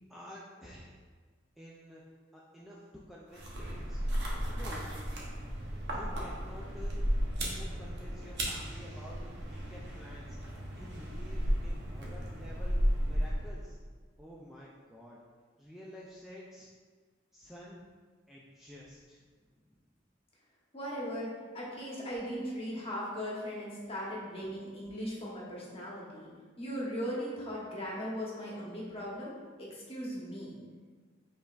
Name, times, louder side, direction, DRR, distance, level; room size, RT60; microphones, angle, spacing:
voice 1, 0.1-1.0 1.6-2.0 2.3-2.8 3.1-4.0 4.5-5.2 5.8-7.0 7.4-12.8 13.0-13.8 14.2-15.2 15.6-16.7 17.3-17.8 18.3-19.2 19.5-19.6, equal, ahead, -6 dB, 0.3 m, -50 dB
sound 1, 3.3-13.7, equal, 65° right, 0.8 m, -34 dB
voice 2, 20.7-21.3 21.5-26.3 26.6-29.3 29.6-30.6, equal, 30° left, -5 dB, 1.0 m, -38 dB
5.1 x 3.4 x 2.4 m, 1.5 s
head